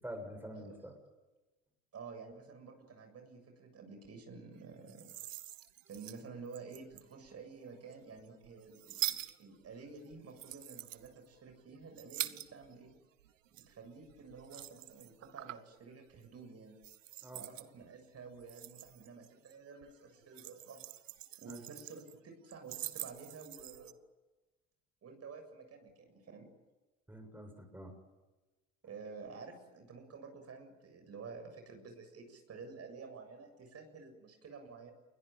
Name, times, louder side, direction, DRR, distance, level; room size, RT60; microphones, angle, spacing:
voice 1, 0.0-1.0 17.2-17.5 21.5-21.7 27.1-27.9, equal, 5° right, 4 dB, 7.1 m, -46 dB
voice 2, 1.9-5.1 5.9-12.9 13.5-16.8 17.3-20.8 21.4-23.9 25.0-26.5 28.8-34.9, right 4 dB, 40° right, 5 dB, 7.4 m, -51 dB
sound 1, 4.7-7.3 7.9-12.9 13.2-15.8 16.1-16.4 16.8-17.7 18.2-19.5 19.8-22.1 22.5-23.9, right 14 dB, 80° right, 1.2 m, -44 dB
28.5 x 22.5 x 9.2 m, 1.1 s
hypercardioid pair, 65°, 38 cm